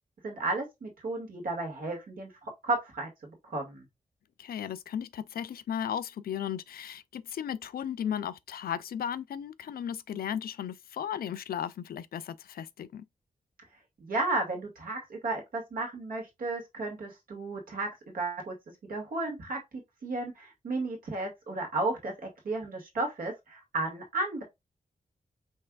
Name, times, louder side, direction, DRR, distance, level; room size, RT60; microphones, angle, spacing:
voice 1, 0.2-3.9 14.0-18.5 18.9-19.6 20.0-22.1 22.4-24.4, right 2 dB, 70° right, 2.1 m, -33 dB
voice 2, 4.4-13.0, left 9 dB, 85° left, 0.4 m, -35 dB
5.5 x 3.3 x 2.4 m
wide cardioid pair, 180°, 15 cm